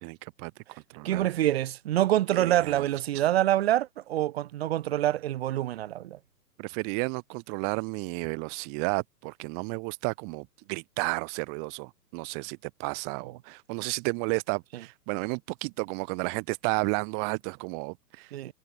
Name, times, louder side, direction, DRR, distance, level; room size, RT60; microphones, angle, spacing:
voice 1, 0.0-0.5 0.9-1.3 2.3-2.9 3.1-3.2 6.6-18.5, right 40 dB or more, 20° right, 1.1 m, -32 dB
voice 2, 1.0-6.2 18.3-18.5, right 13 dB, 40° right, 1.4 m, -26 dB
figure-of-eight pair, 135°, 49 cm